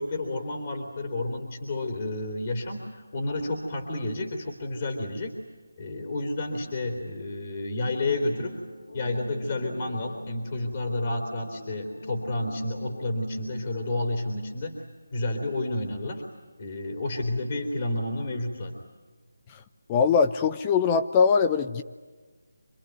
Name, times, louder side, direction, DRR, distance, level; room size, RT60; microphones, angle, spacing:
voice 1, 0.0-5.3 5.8-8.6 8.9-14.8 15.1-16.2 16.6-18.7, left 2 dB, 35° left, 3 dB, 3.3 m, -30 dB
sound 1, 8.2-13.8, equal, 70° left, 5.3 m, -42 dB
voice 2, 19.9-21.8, left 6 dB, 20° left, 9 dB, 0.7 m, -22 dB
27.0 x 22.5 x 9.3 m, 1.3 s
figure-of-eight pair, 160°, 0 cm